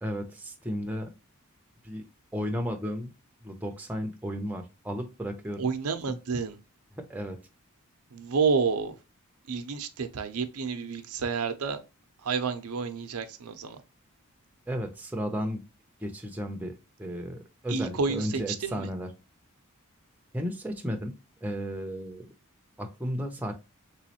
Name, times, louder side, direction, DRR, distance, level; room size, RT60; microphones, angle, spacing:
voice 1, 0.0-1.1 1.8-2.0 2.3-3.1 3.4-5.7 6.1-6.2 7.1-7.4 14.7-15.7 16.0-16.7 17.0-19.1 20.3-21.1 21.4-22.3 22.8-23.5, equal, 5° right, 0.5 m, -34 dB
voice 2, 5.6-6.6 8.1-9.0 9.5-11.8 12.2-13.8 17.7-18.9, right 5 dB, 85° right, 0.6 m, -29 dB
3.4 x 3.1 x 2.8 m
head